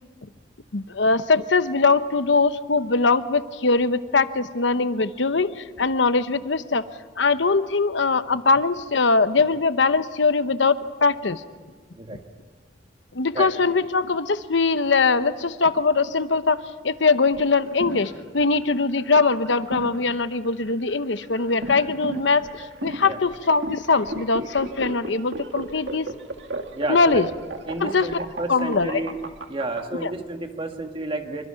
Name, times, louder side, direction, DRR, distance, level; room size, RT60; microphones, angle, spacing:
voice 1, 0.7-6.8 7.2-11.4 13.1-26.1 26.9-27.2 27.8-28.0 28.5-28.9 30.0-30.1, left 4 dB, 70° left, 12 dB, 0.9 m, -21 dB
sound 1, 17.4-29.8, right 2 dB, 70° right, 1.8 m, -35 dB
voice 2, 26.7-27.2 27.7-29.2 29.5-31.5, right 2 dB, 30° right, 4 dB, 1.9 m, -30 dB
26.0 x 24.0 x 5.8 m, 1.5 s
head